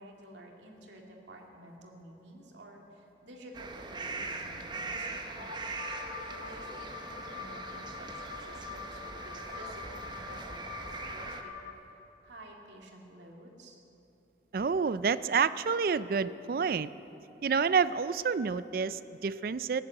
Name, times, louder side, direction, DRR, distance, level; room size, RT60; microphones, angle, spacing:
voice 1, 0.0-5.5 6.4-13.8, right 1 dB, 85° right, 1 dB, 2.2 m, -52 dB
sound 1, 3.5-11.4, right 3 dB, 25° right, 0.7 m, -41 dB
sound 2, 5.3-11.7, left 6 dB, 70° left, 1.2 m, -44 dB
voice 2, 14.5-16.9 17.4-19.8, right 5 dB, 50° right, 16 dB, 0.4 m, -28 dB
16.0 x 11.0 x 7.8 m, 3.0 s
head